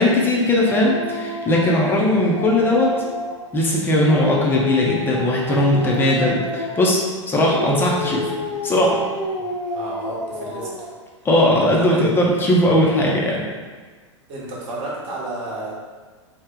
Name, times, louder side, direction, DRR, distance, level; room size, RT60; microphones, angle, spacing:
voice 1, 0.0-2.9 3.5-7.0 7.3-8.3 8.6-9.0 11.2-13.4, left 1 dB, 15° left, -3 dB, 0.4 m, -18 dB
Dog, 0.7-3.5 3.9-7.0 7.4-11.0, left 2 dB, 80° left, 0.7 m, -29 dB
voice 2, 9.3-10.7 11.7-12.1 14.3-15.7, right 2 dB, 35° right, -5 dB, 0.9 m, -32 dB
3.1 x 2.1 x 3.6 m, 1.4 s
figure-of-eight pair, 95°, 16 cm